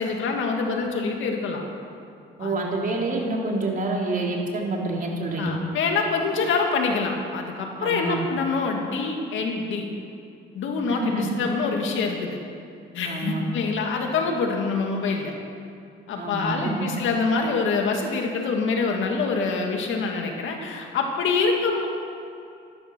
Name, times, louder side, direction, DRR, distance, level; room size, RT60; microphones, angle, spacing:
voice 1, 0.0-1.6 2.4-2.7 5.4-9.9 10.5-12.4 12.9-15.3 16.1-21.9, left 4 dB, 80° left, 2 dB, 2.1 m, -25 dB
voice 2, 2.4-5.5 7.8-8.2 10.8-11.4 13.0-13.4 16.2-16.9, right 2 dB, 45° right, -1 dB, 3.2 m, -27 dB
13.5 x 12.5 x 6.2 m, 2.5 s
cardioid pair, 90°, 20 cm